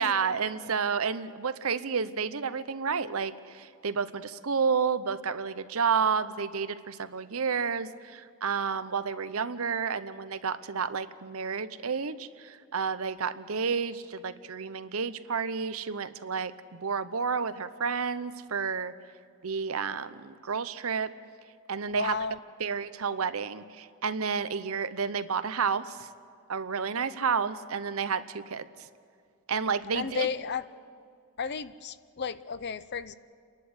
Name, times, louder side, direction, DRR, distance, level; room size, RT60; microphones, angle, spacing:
voice 1, 0.0-18.9 19.4-21.1 21.7-22.2 22.6-26.1 26.5-28.9 29.5-30.3, right 6 dB, 70° right, 13 dB, 0.8 m, -30 dB
voice 2, 21.9-22.4 29.9-30.6 31.4-33.2, left 6 dB, 50° left, 14 dB, 0.6 m, -33 dB
30.0 x 11.5 x 8.0 m, 2.2 s
head